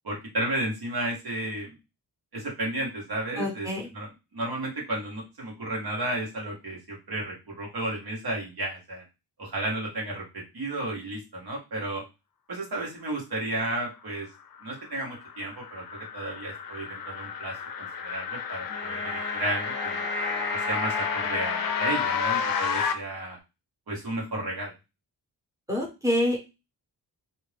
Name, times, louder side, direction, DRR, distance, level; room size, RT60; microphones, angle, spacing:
voice 1, 0.0-1.8 2.3-4.1 4.3-9.0 9.4-12.0 12.5-14.3 14.6-20.1 20.5-23.4 23.9-24.7, right 1 dB, 65° right, -2 dB, 1.3 m, -33 dB
voice 2, 3.4-3.9 25.7-26.4, left 1 dB, 10° right, -2 dB, 1.0 m, -26 dB
sound 1, 14.6-22.9, left 7 dB, 60° left, 0.5 m, -31 dB
Wind instrument woodwind instrument, 18.7-22.9, equal, 30° left, 0.8 m, -37 dB
2.5 x 2.5 x 3.3 m, 0.26 s
wide cardioid pair, 140°, 40 cm